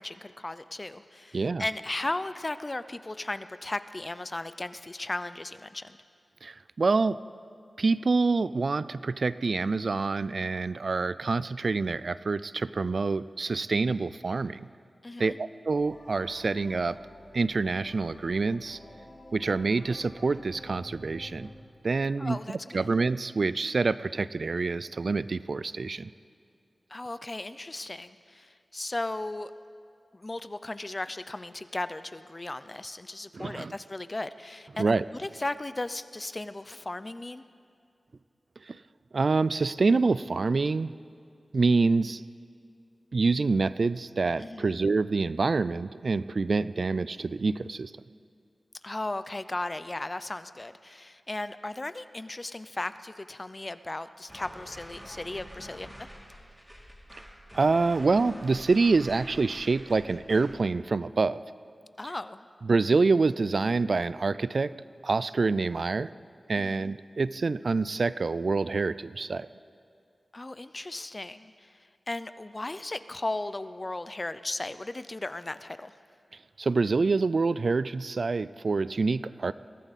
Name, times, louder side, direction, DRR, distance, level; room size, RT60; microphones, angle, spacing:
voice 1, 0.0-6.0 15.0-15.4 22.2-22.9 26.9-29.5 30.1-37.4 44.4-44.7 48.8-56.1 62.0-62.5 66.5-66.9 70.3-71.7 72.1-75.9, left 2 dB, 30° left, 13 dB, 0.5 m, -36 dB
voice 2, 1.3-1.7 6.4-7.2 7.8-14.7 15.2-17.0 17.3-18.8 19.3-21.5 21.8-22.4 22.7-26.1 33.3-33.8 34.8-35.0 38.7-38.8 39.1-40.9 41.5-42.2 43.1-47.9 57.5-61.4 62.6-64.7 65.0-66.1 66.5-69.5 76.6-79.5, right 4 dB, 65° right, 16 dB, 0.3 m, -26 dB
sound 1, 15.7-21.5, left 1 dB, 60° left, 5.2 m, -50 dB
sound 2, 54.3-60.6, equal, 5° right, 3.0 m, -47 dB
22.0 x 15.0 x 4.2 m, 2.4 s
wide cardioid pair, 65°, 0 cm